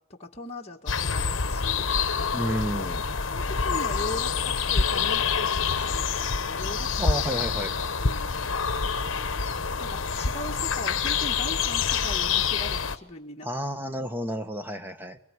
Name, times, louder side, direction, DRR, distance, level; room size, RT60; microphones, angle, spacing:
voice 1, 0.2-1.9 3.2-7.2 8.0-8.3 9.8-13.5, left 1 dB, 30° left, 0 dB, 1.8 m, -39 dB
sound 1, 0.9-13.0, left 5 dB, 60° left, 1.2 m, -27 dB
voice 2, 2.3-3.0 7.0-7.8 13.4-15.2, equal, 10° right, 9 dB, 1.4 m, -31 dB
24.0 x 23.0 x 9.8 m, 0.73 s
head